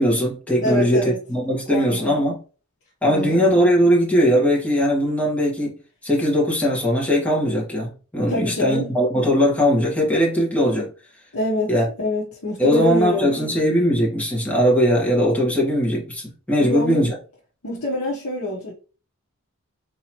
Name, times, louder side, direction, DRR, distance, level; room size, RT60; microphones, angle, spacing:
voice 1, 0.0-2.4 3.0-5.7 6.0-10.9 11.7-11.8 12.6-17.1, equal, 5° left, 1.4 m, -19 dB
voice 2, 0.6-1.2 1.7-2.1 3.0-3.5 8.3-8.9 11.3-13.6 16.6-17.1 17.6-18.7, left 2 dB, 70° left, 1.0 m, -26 dB
3.9 x 2.9 x 2.9 m
head